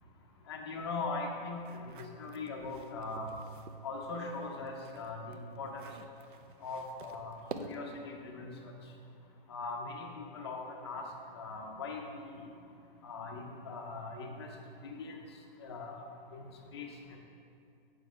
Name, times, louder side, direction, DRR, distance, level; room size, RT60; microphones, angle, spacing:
voice 1, 0.5-1.6 1.9-3.4 3.8-5.9 6.6-8.7 9.5-11.0 11.3-12.3 13.0-14.5 14.8-15.2 15.6-16.0 16.3-16.9, left 3 dB, 25° left, 2 dB, 0.5 m, -40 dB
sound 1, 1.6-3.8 4.2-8.0, right 5 dB, 60° right, 0.5 m, -49 dB
6.2 x 4.7 x 4.8 m, 2.5 s
hypercardioid pair, 170°, 29 cm